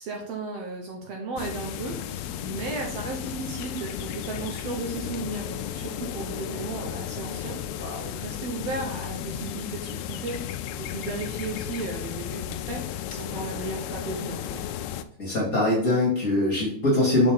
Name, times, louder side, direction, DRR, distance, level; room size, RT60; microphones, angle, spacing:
voice 1, 0.0-7.6 8.1-14.7, right 3 dB, 65° right, 1 dB, 1.9 m, -35 dB
sound 1, 1.4-15.0, left 10 dB, 80° left, 1.8 m, -34 dB
voice 2, 7.8-8.1 15.2-17.3, left 2 dB, 35° left, -3 dB, 2.0 m, -23 dB
6.4 x 5.3 x 3.7 m, 0.63 s
omnidirectional pair, 3.5 m